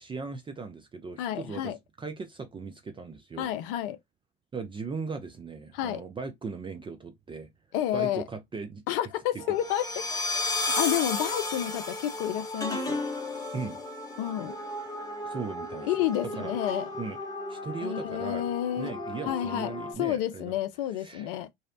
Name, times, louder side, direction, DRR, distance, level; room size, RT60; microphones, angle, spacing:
voice 1, 0.0-1.7 2.0-3.5 4.5-7.5 7.9-8.8 9.3-9.6 13.5-13.8 15.3-15.9 16.2-16.5 17.0-17.2 17.5-18.4 18.8-20.5 21.0-21.4, right 4 dB, 15° right, 0.4 m, -38 dB
voice 2, 1.2-1.8 3.4-4.0 5.7-6.0 7.7-8.2 8.9-9.9 10.8-13.0 14.2-14.5 15.8-16.9 17.8-18.9 19.3-21.5, left 12 dB, 65° left, 0.5 m, -30 dB
sound 1, 9.4-19.9, left 2 dB, 15° left, 0.8 m, -34 dB
2.6 x 2.0 x 2.5 m
hypercardioid pair, 70°, 30 cm